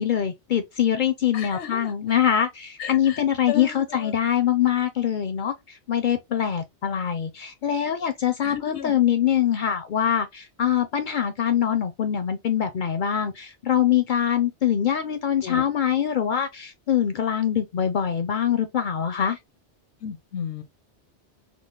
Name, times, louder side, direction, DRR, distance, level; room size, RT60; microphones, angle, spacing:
voice 1, 0.0-19.4, left 9 dB, 60° left, 0.5 m, -24 dB
voice 2, 1.3-1.9 2.8-4.1 8.4-9.0 15.4-15.6 20.0-20.6, left 9 dB, 80° left, 0.9 m, -34 dB
3.7 x 2.0 x 3.1 m
omnidirectional pair, 1.1 m